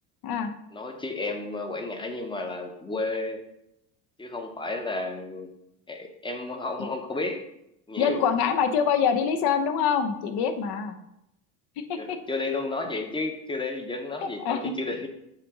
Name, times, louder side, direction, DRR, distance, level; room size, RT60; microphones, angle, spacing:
voice 1, 0.7-3.4 4.2-5.5 5.9-7.4 7.9-8.2 12.0-15.1, left 2 dB, 10° left, 5 dB, 0.6 m, -32 dB
voice 2, 8.0-11.0 11.9-12.2 14.4-14.7, left 7 dB, 70° left, 7 dB, 0.8 m, -25 dB
7.4 x 2.7 x 4.8 m, 0.82 s
cardioid pair, 135°, 40 cm